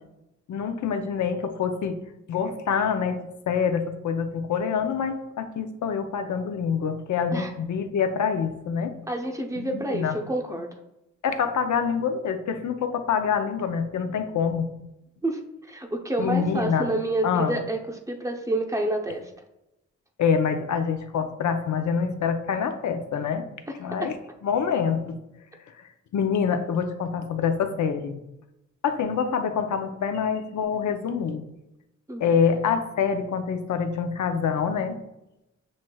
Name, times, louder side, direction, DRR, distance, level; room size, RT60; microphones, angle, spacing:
voice 1, 0.5-2.0 2.3-8.9 9.6-10.1 11.2-14.7 16.2-16.9 17.2-17.6 20.2-23.4 23.8-24.2 24.4-25.2 26.1-28.2 28.8-31.4 32.2-35.0, left 6 dB, 80° left, 7 dB, 0.6 m, -26 dB
voice 2, 9.1-10.7 15.2-15.4 15.7-19.3 23.7-24.1 32.1-32.3, right 1 dB, 10° right, 2 dB, 0.7 m, -28 dB
7.4 x 3.1 x 2.3 m, 0.89 s
cardioid pair, 85°, 29 cm